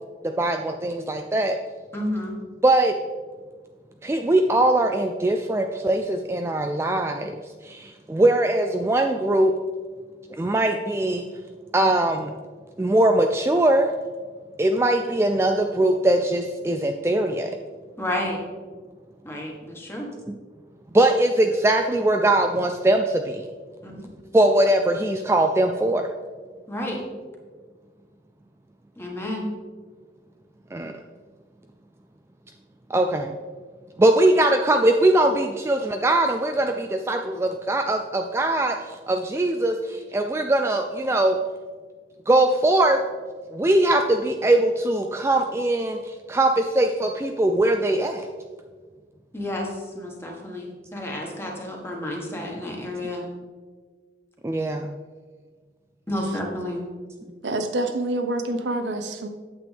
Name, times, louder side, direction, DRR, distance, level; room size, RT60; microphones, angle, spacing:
voice 1, 0.4-1.6 2.6-2.9 4.0-9.5 10.4-11.3 11.7-12.3 12.8-13.9 14.6-17.6 20.3-20.4 20.9-23.5 24.3-26.1 30.7-30.9 32.9-33.4 34.0-41.4 42.3-43.0 43.5-48.3 54.4-54.9, right 1 dB, 15° right, 4 dB, 0.3 m, -21 dB
voice 2, 1.9-2.3 18.0-18.4 19.2-20.1 23.8-24.0 26.7-27.0 29.0-29.5 49.3-53.3 56.1-56.9, left 1 dB, 15° left, -1 dB, 1.6 m, -30 dB
voice 3, 57.4-59.3, right 2 dB, 75° right, 7 dB, 0.7 m, -26 dB
8.9 x 7.8 x 3.5 m, 1.5 s
head